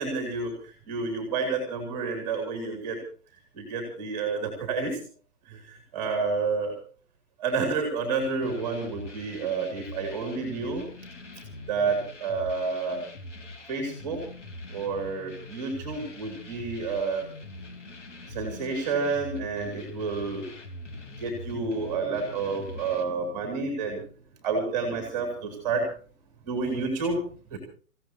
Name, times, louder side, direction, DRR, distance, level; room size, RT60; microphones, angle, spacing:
voice 1, 0.0-3.0 3.5-5.0 5.4-6.8 7.4-10.8 11.7-13.0 13.7-14.3 14.7-17.3 18.3-20.5 21.1-24.0 24.4-25.9 26.4-27.2 27.5-27.6, right 4 dB, 10° right, 3 dB, 2.9 m, -29 dB
sound 1, 8.2-23.0, left 2 dB, 50° left, 4.0 m, -43 dB
28.5 x 16.5 x 2.9 m, 0.39 s
hypercardioid pair, 175°, 45 cm